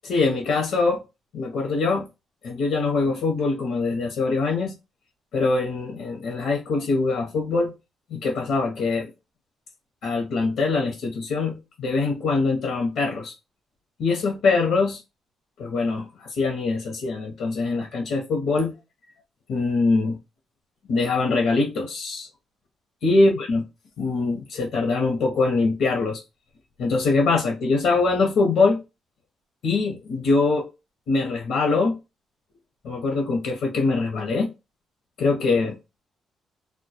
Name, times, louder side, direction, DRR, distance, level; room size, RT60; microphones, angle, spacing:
voice 1, 0.0-1.0 1.3-2.1 2.4-4.7 5.3-7.7 8.1-9.1 10.0-13.3 14.0-15.0 15.6-18.7 19.5-20.2 20.9-22.3 23.0-23.6 24.0-26.2 26.8-28.8 29.6-30.7 31.1-32.0 32.8-34.5 35.2-35.8, left 3 dB, 75° left, 0.7 m, -23 dB
2.2 x 2.1 x 2.7 m
cardioid pair, 90°, 0 cm